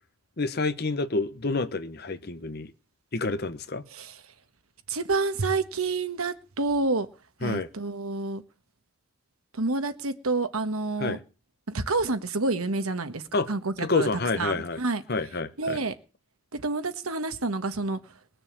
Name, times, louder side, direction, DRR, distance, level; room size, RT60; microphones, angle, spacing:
voice 1, 0.4-2.7 3.1-3.8 7.4-7.7 11.0-11.2 13.3-13.5 13.8-14.8 15.1-15.8, left 3 dB, 50° left, 12 dB, 1.0 m, -28 dB
voice 2, 4.9-7.1 7.4-8.4 9.5-11.2 11.7-14.1 14.4-15.0 15.6-16.0 16.5-18.0, right 3 dB, 85° right, 10 dB, 1.4 m, -28 dB
20.0 x 6.8 x 7.3 m, 0.35 s
head